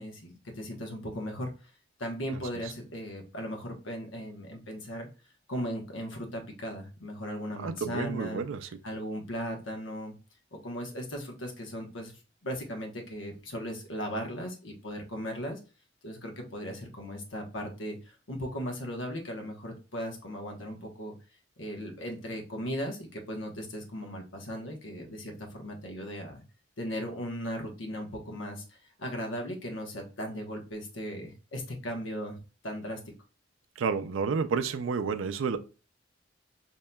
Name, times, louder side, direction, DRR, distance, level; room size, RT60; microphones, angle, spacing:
voice 1, 0.0-1.5 2.0-5.1 5.5-8.5 8.8-10.1 10.6-12.1 12.4-15.6 16.0-21.1 21.6-26.4 26.8-32.4 32.6-33.0, equal, 75° left, 2 dB, 1.0 m, -37 dB
voice 2, 7.6-8.6 33.8-35.6, right 5 dB, 90° right, 10 dB, 0.4 m, -30 dB
5.3 x 2.8 x 2.2 m, 0.33 s
head